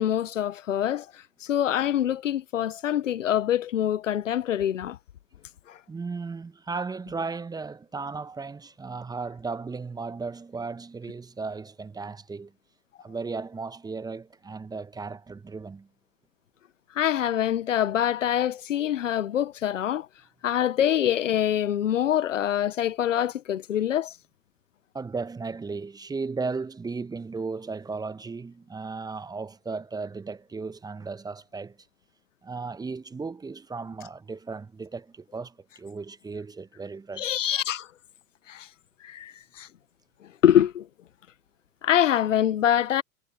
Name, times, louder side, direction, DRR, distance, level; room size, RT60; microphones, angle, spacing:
voice 1, 0.0-5.0 5.7-5.8 16.9-20.1 20.4-24.1 37.2-37.9 38.5-38.7 39.0-39.7 40.4-40.9 41.8-43.0, left 10 dB, 65° left, 1.0 m, -25 dB
voice 2, 5.9-12.5 13.0-15.9 24.9-31.8 32.4-37.4, right 4 dB, 10° right, 1.4 m, -35 dB
figure-of-eight pair, 95°, 41 cm